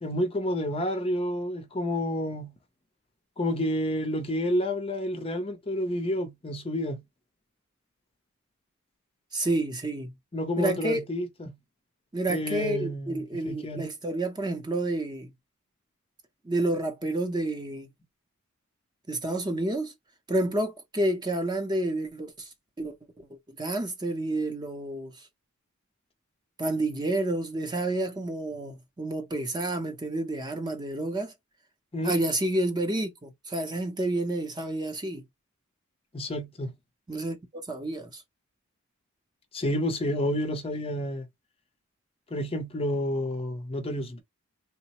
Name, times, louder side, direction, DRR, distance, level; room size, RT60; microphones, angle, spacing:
voice 1, 0.0-2.5 3.4-7.0 10.3-11.5 12.3-13.9 31.9-32.1 36.1-36.7 39.5-41.3 42.3-44.2, left 1 dB, 25° left, 0.5 m, -29 dB
voice 2, 9.3-10.1 10.6-11.0 12.1-15.3 16.4-17.9 19.1-19.9 20.3-22.5 22.8-23.0 23.3-25.3 26.6-31.3 32.0-35.2 37.1-38.2, right 1 dB, 20° right, 0.6 m, -29 dB
3.3 x 2.0 x 2.8 m
head